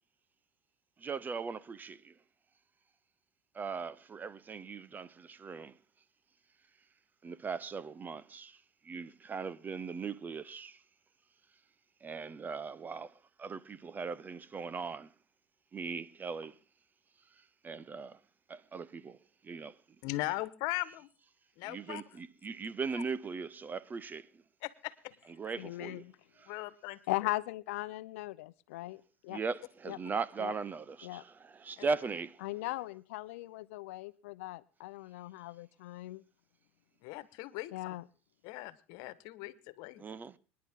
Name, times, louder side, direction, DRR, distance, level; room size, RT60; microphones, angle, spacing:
voice 1, 1.0-2.1 3.5-5.8 7.2-10.8 12.0-15.1 15.7-16.6 17.6-18.2 18.5-19.2 19.4-19.8 21.6-24.4 25.4-26.0 26.4-26.5 29.3-32.4 40.0-40.4, right 5 dB, 25° right, 0.8 m, -39 dB
voice 2, 20.0-21.1 21.6-22.0 22.9-23.0 24.6-24.9 26.5-27.0 31.8-31.9 37.0-37.9 38.4-40.0, left 19 dB, 65° left, 1.4 m, -39 dB
voice 3, 25.6-26.0 27.1-29.4 29.9-30.0 30.4-30.5 31.0-31.2 32.4-36.2 37.7-38.1, left 18 dB, 80° left, 0.7 m, -39 dB
25.5 x 10.5 x 3.7 m
supercardioid pair, 105°, 7 cm